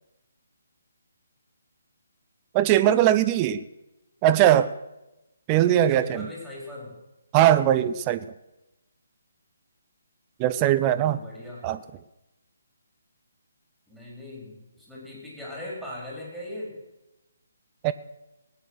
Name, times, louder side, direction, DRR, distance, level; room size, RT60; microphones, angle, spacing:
voice 1, 2.5-3.6 4.2-4.7 5.5-6.3 7.3-8.3 10.4-11.2 11.6-11.8 17.8-17.9, right 12 dB, 20° right, 12 dB, 0.5 m, -20 dB
voice 2, 5.9-7.0 10.8-11.6 13.9-16.8, left 1 dB, ahead, -5 dB, 4.5 m, -39 dB
19.0 x 8.9 x 6.3 m, 0.98 s
figure-of-eight pair, 140°, 0 cm